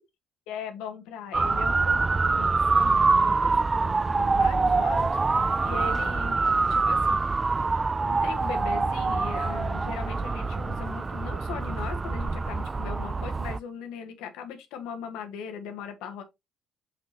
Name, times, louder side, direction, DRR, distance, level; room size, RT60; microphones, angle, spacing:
voice 1, 0.5-7.5 8.0-16.2, left 7 dB, 90° left, 1.5 m, -39 dB
Motor vehicle (road) / Siren, 1.3-13.6, right 3 dB, 25° right, 0.3 m, -25 dB
6.0 x 5.6 x 2.9 m
cardioid pair, 85°, 0 cm